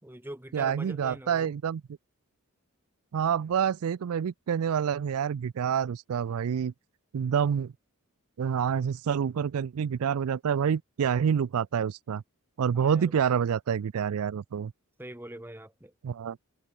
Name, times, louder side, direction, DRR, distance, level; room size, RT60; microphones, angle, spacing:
voice 1, 0.0-1.6 12.8-13.1 15.0-15.9, right 1 dB, 10° right, 1.8 m, -43 dB
voice 2, 0.5-1.8 3.1-6.7 7.1-7.7 8.4-12.2 12.6-14.7 16.0-16.4, right 7 dB, 75° right, 0.4 m, -27 dB
head